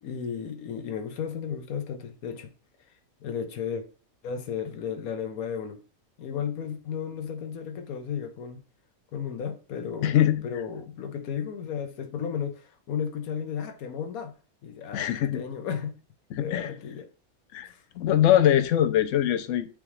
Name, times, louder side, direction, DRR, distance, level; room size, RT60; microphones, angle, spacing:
voice 1, 0.0-2.5 3.2-3.8 4.2-5.8 6.2-8.6 9.1-14.3 14.6-15.9 16.4-17.1 17.6-17.8, left 7 dB, 85° left, 1.3 m, -34 dB
voice 2, 10.0-10.4 14.9-15.4 16.3-16.7 17.5-17.7 18.0-19.7, left 11 dB, 65° left, 0.9 m, -22 dB
8.5 x 3.5 x 3.2 m
omnidirectional pair, 1.5 m